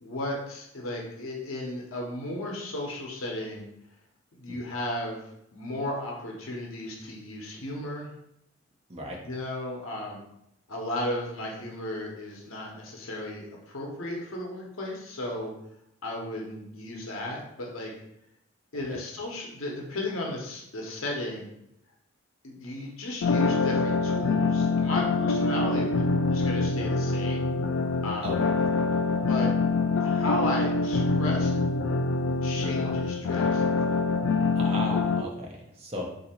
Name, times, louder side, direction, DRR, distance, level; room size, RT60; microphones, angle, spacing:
voice 1, 0.0-3.6 4.3-8.1 9.2-10.2 10.7-15.5 16.0-17.9 18.7-21.5 22.4-26.0 26.3-27.5 28.0-28.4 29.3-29.5 30.0-31.6 32.4-33.6, left 1 dB, 80° left, -1 dB, 0.9 m, -34 dB
sound 1, 23.2-35.2, left 3 dB, 65° left, 0.3 m, -25 dB
voice 2, 28.2-28.5 32.8-32.9 34.5-36.0, equal, 30° right, 0 dB, 0.8 m, -36 dB
3.7 x 2.8 x 4.3 m, 0.80 s
head